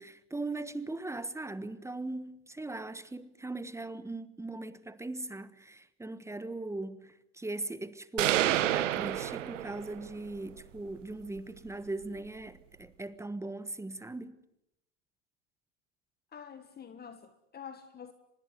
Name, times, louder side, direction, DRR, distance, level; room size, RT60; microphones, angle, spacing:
voice 1, 0.0-14.4, right 2 dB, 10° right, 1.3 m, -39 dB
sound 1, 8.2-10.1, right 13 dB, 85° right, 1.4 m, -29 dB
voice 2, 16.3-18.1, left 7 dB, 25° left, 1.6 m, -47 dB
25.0 x 21.0 x 9.3 m
hypercardioid pair, 100°, 36 cm